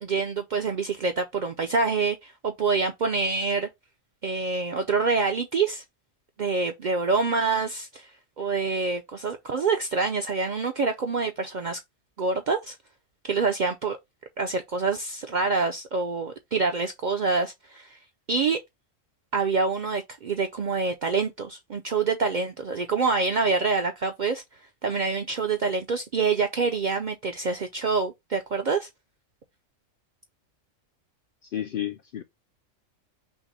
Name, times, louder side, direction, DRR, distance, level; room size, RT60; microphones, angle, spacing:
voice 1, 0.0-3.7 4.2-5.8 6.4-8.1 8.4-11.8 12.2-12.8 13.2-14.0 14.4-18.0 18.3-18.6 19.3-24.4 24.8-28.9, right 4 dB, 60° right, 0.5 m, -26 dB
voice 2, 31.5-32.2, left 11 dB, 65° left, 0.5 m, -31 dB
5.7 x 2.0 x 4.0 m
omnidirectional pair, 1.3 m